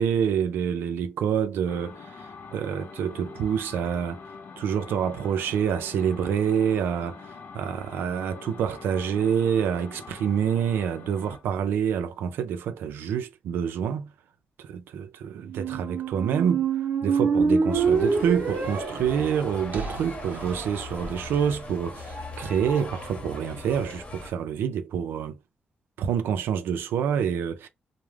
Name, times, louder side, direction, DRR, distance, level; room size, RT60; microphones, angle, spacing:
voice 1, 0.0-4.2 4.6-14.1 14.6-16.7 17.0-25.4 26.0-27.7, right 8 dB, 85° right, 0.3 m, -27 dB
sound 1, 1.7-11.5, left 5 dB, 65° left, 0.6 m, -44 dB
Squeak, 15.4-21.4, right 5 dB, 50° right, 0.7 m, -27 dB
sound 2, 17.7-24.3, left 2 dB, 40° left, 0.9 m, -39 dB
2.3 x 2.0 x 3.1 m
cardioid pair, 70°, 4 cm